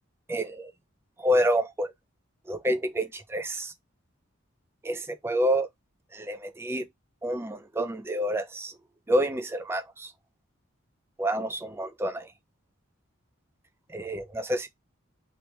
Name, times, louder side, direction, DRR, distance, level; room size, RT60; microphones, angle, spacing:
voice 1, 0.3-0.7 1.2-1.9 2.5-3.7 4.8-5.7 6.1-6.9 7.2-8.7 9.1-10.1 11.2-12.3 13.9-14.7, equal, 10° right, 0.3 m, -28 dB
3.0 x 2.9 x 3.1 m
head